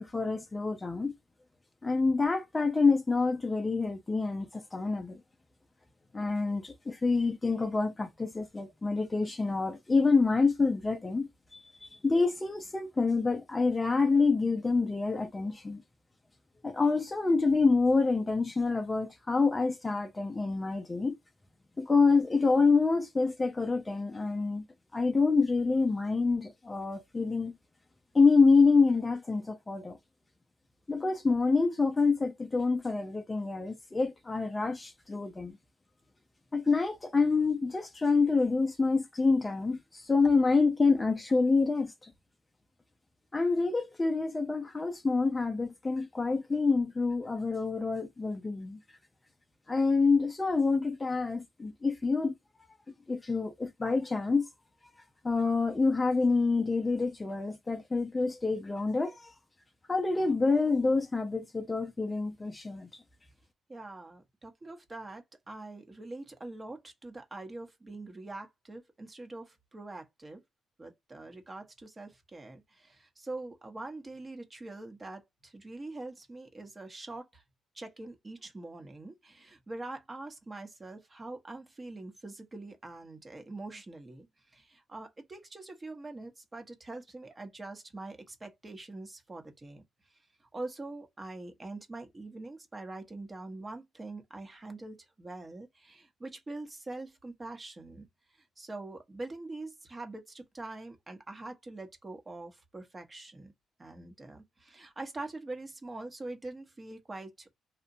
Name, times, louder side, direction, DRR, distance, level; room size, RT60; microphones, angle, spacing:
voice 1, 0.1-1.1 1.8-5.2 6.1-15.8 16.6-21.2 21.8-24.6 24.9-27.5 28.1-30.0 30.9-35.5 36.5-42.1 43.3-48.8 49.7-52.3 53.1-54.4 55.2-59.3 59.9-62.9, left 4 dB, 20° left, 0.4 m, -27 dB
voice 2, 63.7-70.4 70.8-77.4 77.7-89.8 90.1-103.5 103.8-107.5, right 2 dB, 25° right, 0.8 m, -44 dB
2.8 x 2.1 x 2.6 m
cardioid pair, 90°, 0 cm